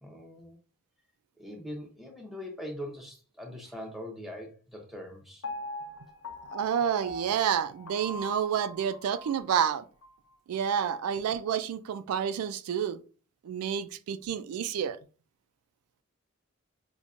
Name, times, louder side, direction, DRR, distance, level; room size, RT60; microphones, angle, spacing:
voice 1, 0.0-0.6 1.4-5.4, equal, ahead, 0.6 m, -42 dB
Piano, 5.4-9.5 10.0-10.1, left 1 dB, 75° left, 0.6 m, -41 dB
voice 2, 6.5-9.8 10.5-13.0 13.4-15.0, right 8 dB, 85° right, 0.3 m, -29 dB
5.2 x 2.2 x 2.4 m
head